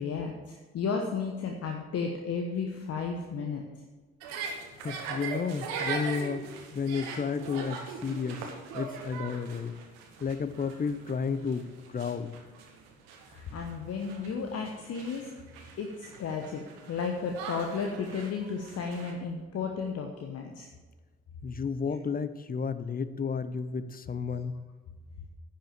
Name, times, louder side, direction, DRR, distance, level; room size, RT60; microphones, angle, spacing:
voice 1, 0.0-3.6 13.3-15.3 15.8-20.7, left 5 dB, 55° left, 2 dB, 1.1 m, -33 dB
sound 1, 4.2-19.1, right 5 dB, 80° right, 1.2 m, -41 dB
voice 2, 4.8-8.5 8.7-9.7 10.2-12.3 21.4-24.6, left 5 dB, 30° left, 13 dB, 0.7 m, -32 dB
9.9 x 5.8 x 7.3 m, 1.3 s
hypercardioid pair, 40°, 30 cm